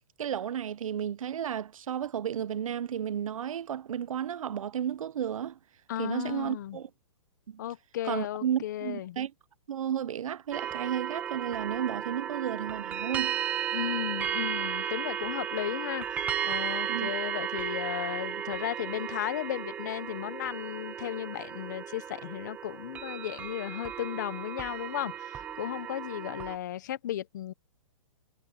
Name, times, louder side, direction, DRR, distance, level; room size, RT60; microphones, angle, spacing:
voice 1, 0.2-5.6 6.0-6.9 7.5-7.6 8.0-9.3 9.7-13.4 16.9-17.1, right 9 dB, 85° right, 0.7 m, -33 dB
voice 2, 5.9-6.8 7.6-9.2 13.7-27.5, left 12 dB, 35° left, 0.9 m, -35 dB
sound 1, 10.5-26.6, right 9 dB, 10° right, 1.1 m, -35 dB
hypercardioid pair, 180°, 17 cm